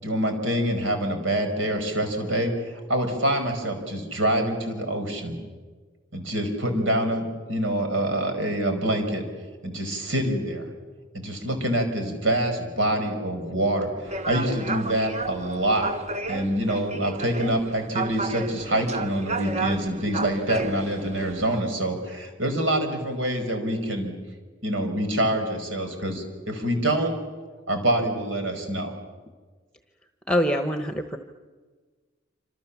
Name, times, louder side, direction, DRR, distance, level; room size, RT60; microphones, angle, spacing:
voice 1, 0.0-5.4 6.1-9.2 9.6-10.6 11.1-15.9 16.3-24.1 24.6-27.1 27.7-28.9, right 1 dB, 80° right, 5 dB, 5.3 m, -26 dB
sound 1, 14.0-21.6, right 3 dB, 35° right, 1.2 m, -32 dB
voice 2, 30.3-31.2, equal, 5° left, 7 dB, 1.1 m, -24 dB
27.5 x 26.5 x 7.3 m, 1.4 s
head